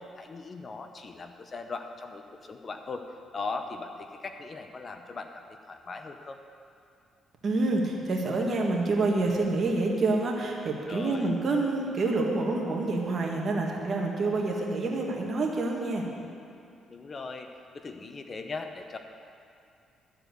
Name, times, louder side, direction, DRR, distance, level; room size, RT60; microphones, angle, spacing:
voice 1, 0.0-3.0 3.3-6.4 10.9-11.3 16.9-19.0, left 4 dB, 40° left, 6 dB, 0.7 m, -39 dB
voice 2, 7.4-16.0, right 2 dB, 50° right, 0 dB, 1.7 m, -27 dB
12.5 x 4.6 x 8.1 m, 2.5 s
cardioid pair, 90°, 0 cm